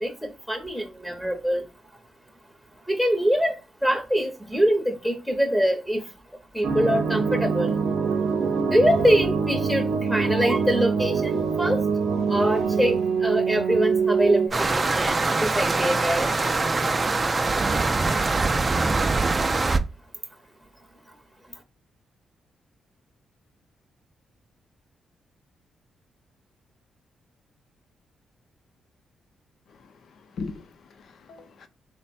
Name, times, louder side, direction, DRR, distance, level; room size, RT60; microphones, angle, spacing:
voice 1, 0.0-1.6 2.9-6.0 6.5-7.8 8.7-11.8 12.3-16.3, equal, 5° left, 0.9 m, -24 dB
sound 1, 6.6-14.5, right 5 dB, 70° right, 0.7 m, -24 dB
sound 2, 14.5-19.8, right 3 dB, 35° right, 0.4 m, -23 dB
voice 2, 29.7-31.7, left 4 dB, 70° left, 0.6 m, -40 dB
3.2 x 2.2 x 4.1 m
cardioid pair, 65°, 0 cm